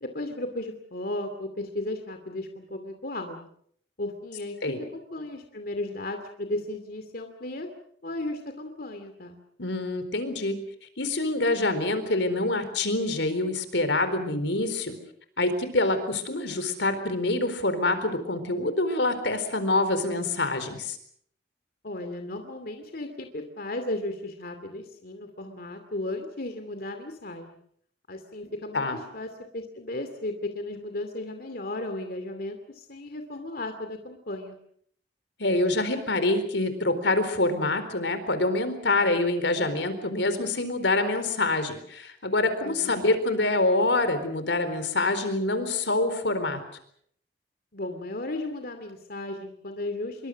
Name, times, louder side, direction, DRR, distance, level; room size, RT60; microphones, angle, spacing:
voice 1, 0.0-3.5 4.0-4.6 4.9-7.7 8.0-9.4 21.8-27.6 28.1-34.6 42.6-43.1 47.7-50.3, left 2 dB, 55° left, 6 dB, 2.5 m, -35 dB
voice 2, 9.6-10.6 11.0-14.9 15.4-21.0 28.7-29.0 35.4-46.6, left 2 dB, 85° left, 11 dB, 4.2 m, -26 dB
26.5 x 24.0 x 6.4 m, 0.66 s
head